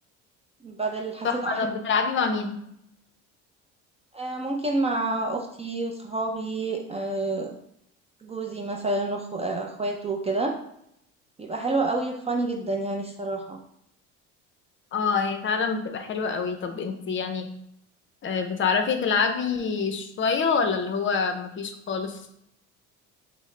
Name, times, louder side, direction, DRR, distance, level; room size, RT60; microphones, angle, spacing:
voice 1, 0.6-1.6 4.1-7.5 8.2-10.5 11.4-13.6, right 2 dB, 20° right, 2 dB, 0.4 m, -28 dB
voice 2, 1.2-2.6 14.9-17.5 18.2-22.2, left 5 dB, 35° left, 6 dB, 0.6 m, -26 dB
6.1 x 2.1 x 3.2 m, 0.75 s
cardioid pair, 105°, 34 cm